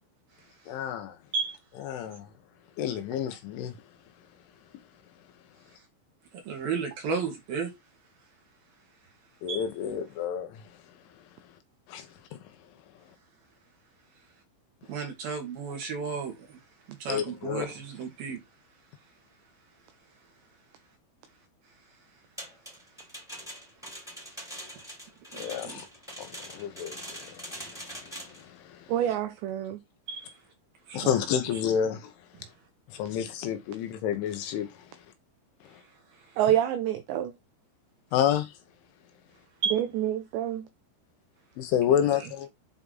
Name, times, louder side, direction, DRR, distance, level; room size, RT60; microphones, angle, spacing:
voice 1, 0.7-1.2 1.8-2.3 2.8-3.8 9.4-10.6 11.9-12.4 17.1-17.7 25.3-25.9 26.2-28.9 30.9-32.1 32.9-35.0 35.6-35.8 38.1-38.5 41.6-42.5, left 9 dB, 75° left, 3.5 m, -30 dB
voice 2, 6.5-7.7 9.5-9.6 14.9-16.6 16.9-18.4 25.3-25.8 30.1-30.2 30.9-31.1 39.6-39.8 42.2-42.3, right 5 dB, 55° right, 3.6 m, -33 dB
sound 1, 22.4-28.4, right 1 dB, ahead, 2.0 m, -43 dB
voice 3, 28.9-29.8 36.4-37.4 39.7-40.7, right 11 dB, 80° right, 2.5 m, -27 dB
8.2 x 4.4 x 4.0 m
omnidirectional pair, 5.8 m